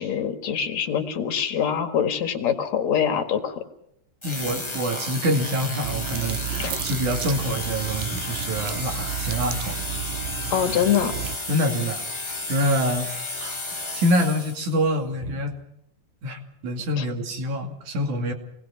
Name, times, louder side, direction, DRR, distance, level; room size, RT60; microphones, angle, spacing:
voice 1, 0.0-3.6 6.6-6.7 10.5-11.1 17.0-17.1, left 8 dB, 60° left, 7 dB, 2.9 m, -24 dB
sound 1, 4.2-14.8, left 2 dB, 15° left, 0.9 m, -32 dB
voice 2, 4.2-9.8 11.5-12.0 12.5-13.1 13.4-15.6 16.2-18.3, equal, 65° right, 3 dB, 3.9 m, -26 dB
sound 2, 5.8-11.4, right 10 dB, 85° right, 2.7 m, -32 dB
27.5 x 19.5 x 5.8 m, 0.75 s
omnidirectional pair, 3.8 m